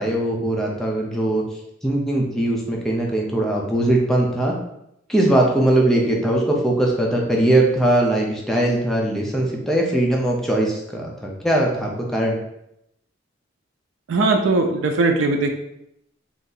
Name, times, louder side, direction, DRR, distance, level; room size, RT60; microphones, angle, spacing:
voice 1, 0.0-1.4 1.8-4.5 5.1-12.4, right 1 dB, ahead, -2 dB, 0.5 m, -20 dB
voice 2, 14.1-15.5, right 3 dB, 85° right, 5 dB, 0.4 m, -19 dB
2.7 x 2.5 x 3.8 m, 0.80 s
head